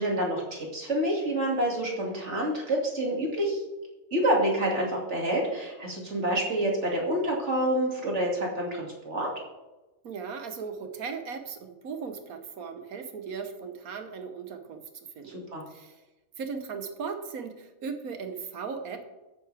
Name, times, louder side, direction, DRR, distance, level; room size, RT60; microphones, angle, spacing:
voice 1, 0.0-3.6 4.1-9.3 15.2-15.6, right 1 dB, 50° right, -1 dB, 2.6 m, -28 dB
voice 2, 10.0-14.8 15.2-15.9 16.4-19.0, right 5 dB, 80° right, 7 dB, 1.4 m, -37 dB
14.0 x 9.4 x 3.4 m, 1.1 s
omnidirectional pair, 1.5 m